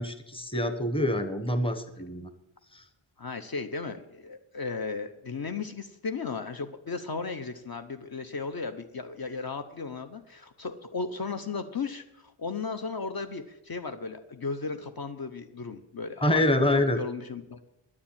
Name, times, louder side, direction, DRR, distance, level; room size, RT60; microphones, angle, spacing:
voice 1, 0.0-2.3 2.7-2.8 16.2-17.0, left 1 dB, 10° left, 9 dB, 1.2 m, -26 dB
voice 2, 3.2-16.4 16.7-17.6, left 4 dB, 45° left, 7 dB, 0.9 m, -35 dB
10.0 x 9.7 x 8.8 m, 0.86 s
wide cardioid pair, 120°, 49 cm